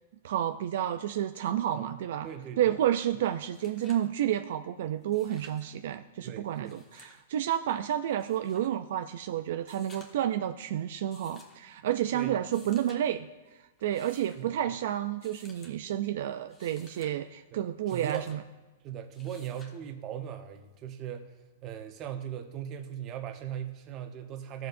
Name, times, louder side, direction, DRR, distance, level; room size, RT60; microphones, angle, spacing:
voice 1, 0.2-2.3 2.6-13.3 13.8-18.4, right 11 dB, 65° right, 8 dB, 0.4 m, -30 dB
voice 2, 2.2-2.8 6.2-6.8 12.1-12.4 14.1-14.8 17.5-17.6 17.9-18.3 18.8-21.3 21.6-24.7, right 10 dB, 30° right, 5 dB, 1.0 m, -39 dB
sound 1, 3.1-3.2 3.4-4.1 5.0-5.7 6.5-7.2 8.2-8.7 9.6-10.3 11.1-11.6 12.4-13.0 13.8-14.4 15.2-15.7 16.4-17.1 17.9-18.4 19.1-19.8 21.2-21.3, left 2 dB, 20° left, 1.4 m, -56 dB
16.0 x 6.7 x 2.6 m, 1.2 s
hypercardioid pair, 150°, 0 cm